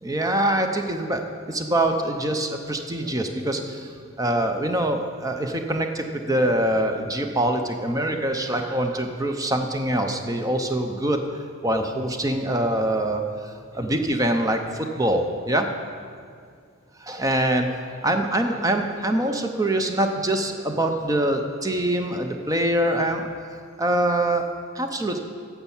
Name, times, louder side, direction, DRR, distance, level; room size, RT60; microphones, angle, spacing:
voice 1, 0.0-15.7 17.0-23.3 23.8-24.5 24.7-25.2, right 1 dB, 15° right, 5 dB, 0.6 m, -24 dB
10.0 x 7.1 x 7.1 m, 2.2 s
head